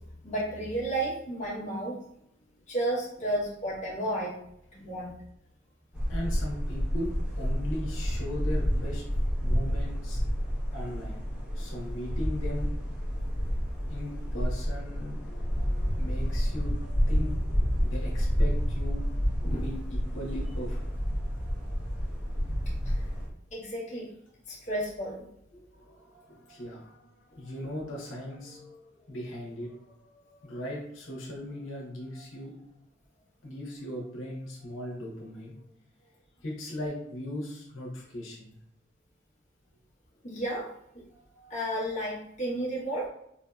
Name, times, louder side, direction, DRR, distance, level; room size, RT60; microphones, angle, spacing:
voice 1, 0.2-2.0 2.7-4.3 4.7-5.1 19.4-19.7 22.9-23.0 23.5-24.1 24.5-25.2 40.2-40.7 41.5-43.1, right 1 dB, 35° left, -6 dB, 1.0 m, -32 dB
sound 1, 5.9-23.3, equal, 5° right, 0.9 m, -29 dB
voice 2, 6.1-9.0 9.4-10.2 10.7-11.3 11.5-12.7 13.9-22.0 25.5-32.6 33.4-35.5 36.0-36.1 36.4-38.5 41.2-41.5 41.9-42.0, left 1 dB, 75° left, -3 dB, 0.9 m, -39 dB
4.0 x 2.7 x 2.3 m, 0.76 s
head